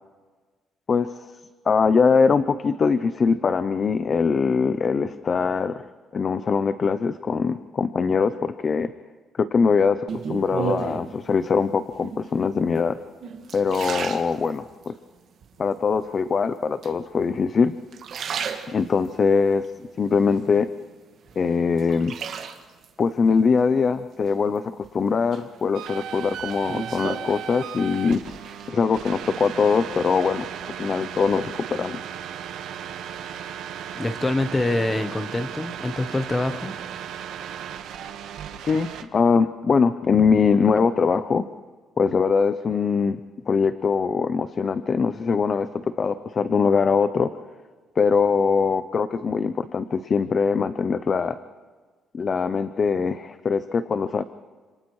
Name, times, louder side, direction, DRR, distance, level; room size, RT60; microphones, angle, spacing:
voice 1, 0.9-1.3 1.7-5.8 6.1-8.9 9.4-10.0 10.3-13.0 13.5-14.9 15.6-17.7 18.7-19.7 20.0-20.7 21.4-22.1 23.0-28.2 28.7-30.4 30.8-32.0 38.6-41.4 42.0-43.2 43.5-47.3 48.0-51.4 52.1-54.2, left 5 dB, 30° left, 12 dB, 0.5 m, -22 dB
sound 1, 10.1-11.1 11.9-12.4 12.9-14.9 15.4-16.0 16.8-17.5 17.8-19.2 19.6-20.9 21.3-22.9 24.3-24.9 25.3-27.9 28.2-28.7, right 7 dB, 50° right, 1.7 m, -34 dB
sound 2, 25.7-39.0, right 9 dB, 85° right, 1.3 m, -36 dB
voice 2, 33.9-36.7, left 2 dB, 15° left, 10 dB, 0.9 m, -25 dB
30.0 x 27.5 x 3.2 m, 1.4 s
cardioid pair, 160°, 0 cm